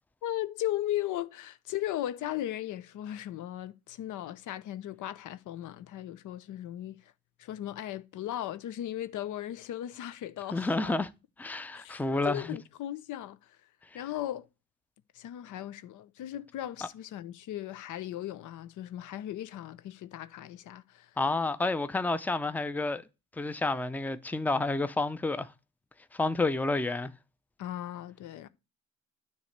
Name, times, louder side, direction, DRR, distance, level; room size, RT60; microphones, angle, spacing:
voice 1, 0.2-7.1 7.4-10.9 11.7-13.6 13.9-14.5 15.1-21.2 27.6-28.5, left 13 dB, 80° left, 0.7 m, -37 dB
voice 2, 10.5-11.1 11.4-12.4 21.2-23.0 23.4-25.5 26.1-27.1, left 2 dB, 5° left, 0.5 m, -29 dB
9.4 x 3.2 x 6.5 m
cardioid pair, 90°, 30 cm